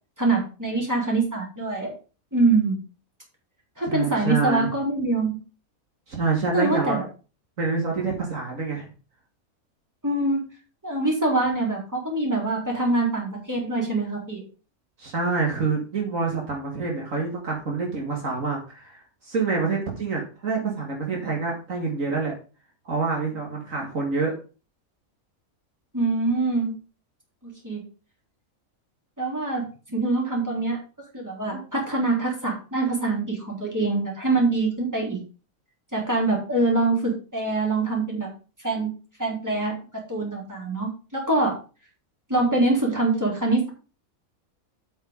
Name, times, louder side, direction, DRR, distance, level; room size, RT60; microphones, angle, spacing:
voice 1, 0.2-1.9 2.3-2.8 3.8-5.4 6.5-7.0 10.0-10.4 10.8-14.4 25.9-26.7 27.4-27.8 29.2-29.7 29.9-30.8 31.1-35.2 35.9-38.3 38.6-38.9 39.2-39.7 40.1-41.6 42.3-43.7, right 2 dB, 10° right, -2 dB, 3.8 m, -24 dB
voice 2, 3.9-4.7 6.1-7.0 7.6-8.9 15.0-19.0 19.3-22.3 22.9-24.3, right 4 dB, 65° right, -1 dB, 2.5 m, -26 dB
8.2 x 6.1 x 5.2 m, 0.34 s
omnidirectional pair, 1.5 m